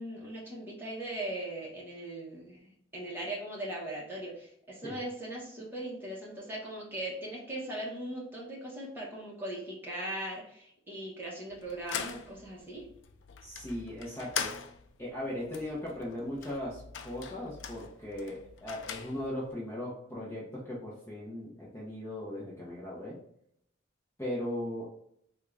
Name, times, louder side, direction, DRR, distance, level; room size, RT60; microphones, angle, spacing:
voice 1, 0.0-12.9, right 1 dB, 10° right, -5 dB, 1.1 m, -39 dB
sound 1, 11.5-19.5, left 7 dB, 70° left, 0.4 m, -42 dB
voice 2, 13.4-14.5 15.0-23.2 24.2-25.0, left 1 dB, 15° left, -6 dB, 0.7 m, -38 dB
3.6 x 2.4 x 3.2 m, 0.71 s
head